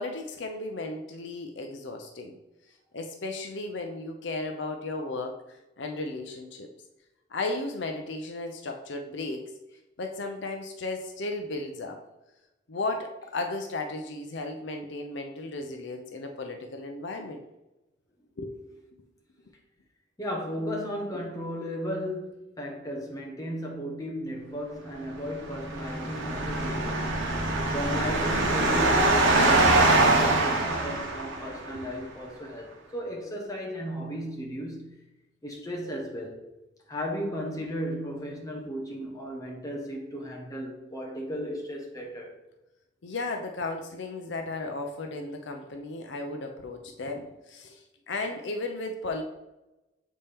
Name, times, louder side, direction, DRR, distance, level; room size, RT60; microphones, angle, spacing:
voice 1, 0.0-2.4 2.9-6.7 7.3-9.5 10.0-12.0 12.7-17.4 18.4-18.6 31.7-32.1 43.0-49.2, left 2 dB, 65° left, 0.6 m, -35 dB
voice 2, 20.2-27.2 27.7-35.0 35.4-36.4 36.9-42.4, equal, 15° left, 1.0 m, -35 dB
sound 1, 25.4-31.7, right 2 dB, 75° right, 1.2 m, -23 dB
7.1 x 4.3 x 3.4 m
head